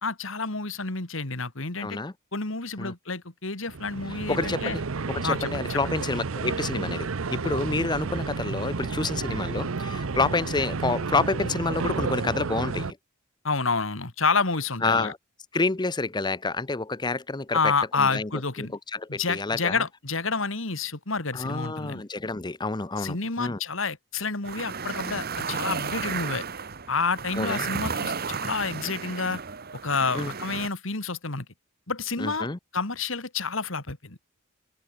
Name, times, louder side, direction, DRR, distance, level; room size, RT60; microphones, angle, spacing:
voice 1, 0.0-2.0 2.3-4.8 5.2-5.8 13.4-15.1 17.5-18.7 19.1-22.0 23.0-26.4 26.9-29.4 29.8-31.4 31.9-32.5 32.7-34.2, left 4 dB, 70° left, 2.7 m, -29 dB
voice 2, 1.8-2.1 2.8-2.9 4.1-4.8 5.1-13.0 14.8-15.2 15.5-18.3 18.6-19.8 21.3-23.6 27.4-27.6 30.1-30.3 32.2-32.6, left 3 dB, 20° left, 0.7 m, -29 dB
sound 1, 3.7-12.9, right 4 dB, 85° right, 0.8 m, -31 dB
sound 2, 24.4-30.7, right 5 dB, 50° right, 1.3 m, -33 dB
head